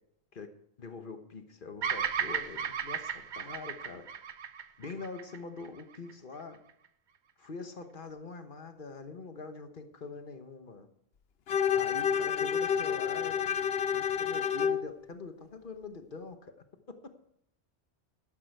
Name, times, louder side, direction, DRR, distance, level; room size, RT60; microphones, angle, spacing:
voice 1, 0.8-4.0 4.8-6.6 7.4-10.9 11.7-13.4 13.9-16.5 16.9-17.1, left 4 dB, 50° left, 7 dB, 1.3 m, -44 dB
Bird vocalization bird call bird song, 1.8-6.1, right 7 dB, 50° right, 0.8 m, -35 dB
Bowed string instrument, 11.5-14.9, left 8 dB, 65° left, 0.9 m, -29 dB
12.5 x 12.0 x 4.7 m, 0.72 s
omnidirectional pair, 1.1 m